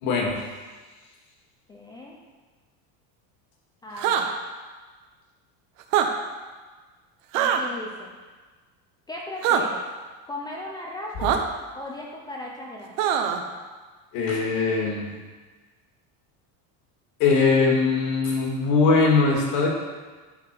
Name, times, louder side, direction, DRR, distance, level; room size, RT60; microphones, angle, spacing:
voice 1, 0.0-0.4 14.1-15.1 17.2-19.7, left 4 dB, 55° left, 0 dB, 2.1 m, -21 dB
voice 2, 1.7-2.2 3.8-4.3 7.3-8.2 9.1-9.8 10.3-11.4 11.7-13.1, left 1 dB, 10° left, -2 dB, 0.3 m, -37 dB
sound 1, 4.0-4.3 5.8-6.1 7.3-7.6 9.4-9.6 11.2-11.4 13.0-13.4, right 9 dB, 65° right, 0.9 m, -22 dB
11.0 x 5.9 x 4.6 m, 1.4 s
cardioid pair, 175°, 41 cm